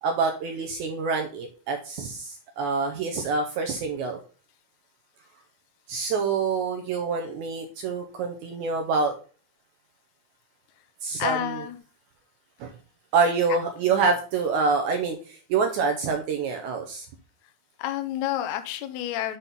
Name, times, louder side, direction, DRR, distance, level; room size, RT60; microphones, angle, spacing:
voice 1, 0.0-4.2 5.9-9.1 11.0-11.6 12.6-12.7 13.1-17.1, right 4 dB, 75° right, 4 dB, 1.9 m, -26 dB
voice 2, 11.2-11.8 17.8-19.4, left 11 dB, 75° left, 9 dB, 1.8 m, -29 dB
7.5 x 4.1 x 5.3 m, 0.39 s
omnidirectional pair, 4.1 m